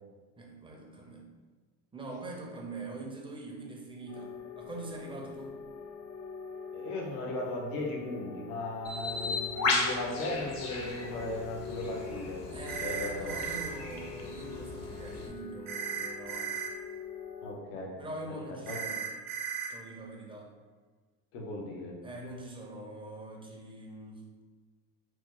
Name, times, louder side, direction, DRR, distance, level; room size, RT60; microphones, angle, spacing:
voice 1, 0.4-1.3 1.9-5.6 12.5-16.6 18.0-19.1 19.7-20.5 22.0-24.2, right 2 dB, 10° right, 0 dB, 0.5 m, -43 dB
sound 1, 4.1-17.5, left 6 dB, 85° left, 1.4 m, -44 dB
voice 2, 6.7-12.4 12.8-13.3 17.4-17.9 18.7-18.8 21.3-21.9, left 2 dB, 70° left, -1 dB, 1.0 m, -37 dB
Bird, 8.8-15.3, left 3 dB, 35° left, 0.7 m, -36 dB
sound 2, 12.7-13.7 15.7-16.7 18.7-19.7, right 7 dB, 70° right, 0.8 m, -36 dB
3.1 x 2.0 x 3.6 m, 1.4 s
supercardioid pair, 90°, 47 cm